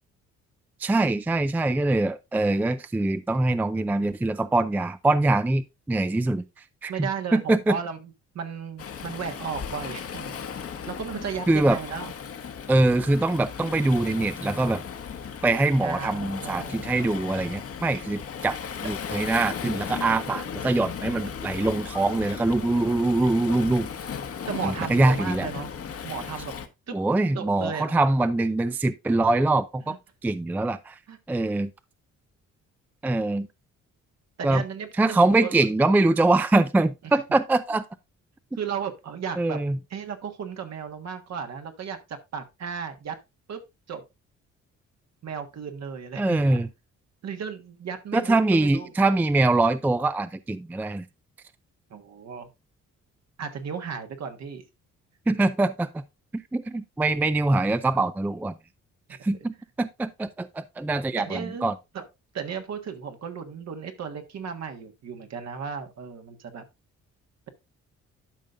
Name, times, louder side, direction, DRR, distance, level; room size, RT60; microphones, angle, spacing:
voice 1, 0.8-6.4 6.8-7.8 11.5-11.8 12.7-14.9 15.4-23.9 24.6-25.5 26.9-30.0 30.2-31.0 31.3-31.7 33.0-33.5 34.4-34.6 35.0-37.8 39.4-39.8 46.2-46.7 48.1-51.1 55.3-56.0 56.3-58.5 59.1-61.7, right 2 dB, 5° right, 0.4 m, -23 dB
voice 2, 6.9-8.0 8.3-10.4 10.9-12.1 15.3-15.4 15.8-16.9 20.5-20.7 24.5-25.7 26.0-26.5 26.9-27.0 27.3-28.0 29.9-30.0 31.1-31.2 34.4-35.2 35.4-35.7 37.0-37.1 38.5-39.6 39.9-43.2 43.5-43.6 43.9-44.0 45.2-46.6 47.2-48.9 51.9-52.5 53.4-54.6 61.2-62.0 62.3-66.6, right 6 dB, 60° right, 1.5 m, -35 dB
Waves surf, 8.8-26.7, left 7 dB, 50° left, 1.2 m, -36 dB
12.5 x 5.3 x 2.5 m
cardioid pair, 90°, 30 cm